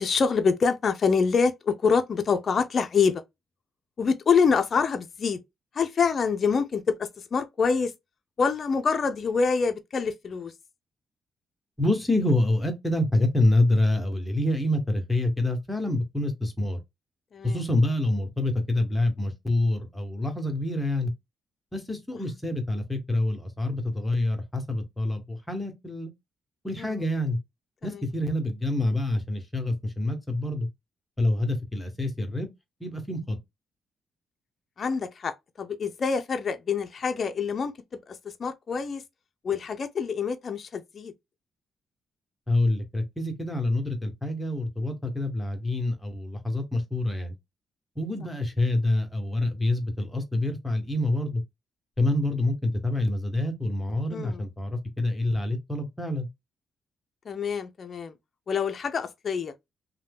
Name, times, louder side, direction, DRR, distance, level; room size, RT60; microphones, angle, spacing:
voice 1, 0.0-3.2 4.0-5.4 5.7-7.9 8.4-10.5 17.3-17.6 26.8-27.0 27.8-28.0 34.8-37.7 38.1-39.0 39.4-41.1 54.1-54.4 57.3-58.1 58.5-59.5, left 5 dB, 50° left, 0.4 m, -26 dB
voice 2, 11.8-16.8 17.4-21.1 21.7-26.1 26.6-27.4 27.8-30.7 31.2-32.5 32.8-33.4 42.5-47.3 48.0-51.4 52.0-56.3, left 1 dB, 15° left, 1.0 m, -26 dB
2.7 x 2.2 x 3.4 m
cardioid pair, 70°, 0 cm